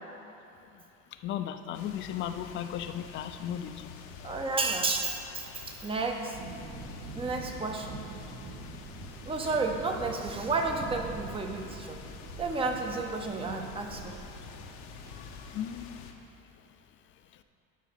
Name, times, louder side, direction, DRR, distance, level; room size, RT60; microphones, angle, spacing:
voice 1, 1.2-3.9 15.5-16.1, left 10 dB, 40° left, 9 dB, 0.5 m, -35 dB
sound 1, 1.7-16.1, left 7 dB, 75° left, 0.9 m, -48 dB
voice 2, 4.2-6.4 7.1-7.9 9.2-12.0 12.4-14.2, right 3 dB, 20° right, 3 dB, 0.7 m, -31 dB
sound 2, 6.3-15.4, right 3 dB, 75° right, 1.5 m, -45 dB
12.0 x 4.3 x 5.7 m, 2.9 s
cardioid pair, 150°, 29 cm